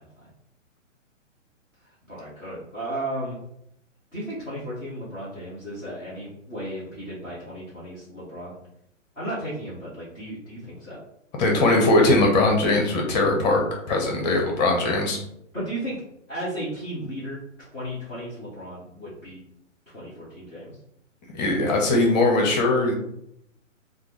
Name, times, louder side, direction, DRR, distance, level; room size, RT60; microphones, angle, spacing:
voice 1, 2.1-3.4 4.1-8.5 9.1-11.0 15.5-16.0 16.3-19.4 19.9-20.8, right 1 dB, ahead, -22 dB, 0.3 m, -34 dB
voice 2, 11.4-13.6 13.9-15.2 21.3-22.9, left 2 dB, 35° left, 1 dB, 0.8 m, -20 dB
3.5 x 2.0 x 3.0 m, 0.76 s
hypercardioid pair, 135°, 39 cm